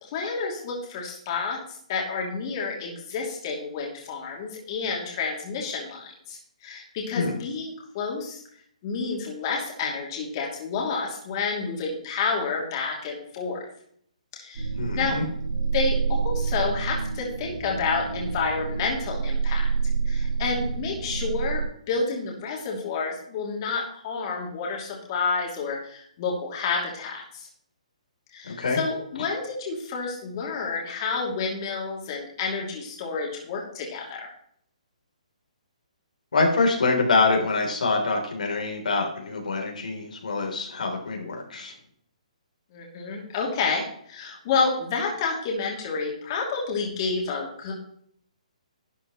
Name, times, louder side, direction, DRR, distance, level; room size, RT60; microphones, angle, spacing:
voice 1, 0.0-8.4 8.8-13.6 14.3-14.7 14.9-15.2 15.7-19.7 20.0-27.5 28.3-34.3 42.7-47.7, left 4 dB, 35° left, -2 dB, 2.8 m, -29 dB
sound 1, 14.5-21.6, right 5 dB, 80° right, 4.2 m, -28 dB
voice 2, 14.8-15.2 28.4-28.8 36.3-41.7, left 3 dB, 80° left, 1 dB, 3.4 m, -25 dB
12.0 x 9.0 x 3.1 m, 0.64 s
hypercardioid pair, 160°, 4 cm